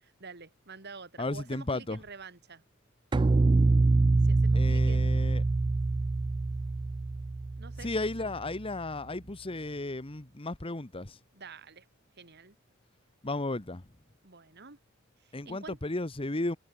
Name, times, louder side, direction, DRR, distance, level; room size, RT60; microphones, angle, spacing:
voice 1, 0.2-2.6 4.2-5.5 7.6-7.9 8.2-8.3 11.3-11.9 12.2-12.5 14.2-14.8 15.2-15.8, right 4 dB, 50° right, 2.9 m, -48 dB
voice 2, 1.2-2.0 4.5-5.4 7.8-11.2 13.2-13.9 15.3-16.6, left 2 dB, 25° left, 1.2 m, -34 dB
sound 1, 3.1-8.4, right 3 dB, 20° right, 0.3 m, -25 dB
head